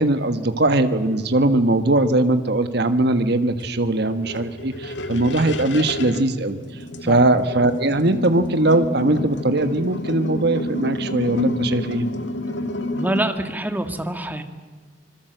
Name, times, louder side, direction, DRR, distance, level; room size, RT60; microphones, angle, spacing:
voice 1, 0.0-6.6 7.0-12.1, right 2 dB, 65° right, 9 dB, 1.6 m, -20 dB
sound 1, 3.6-13.2, left 1 dB, 80° left, 1.9 m, -30 dB
voice 2, 12.9-14.4, right 1 dB, 10° right, 7 dB, 1.8 m, -25 dB
26.0 x 21.5 x 8.0 m, 1.5 s
head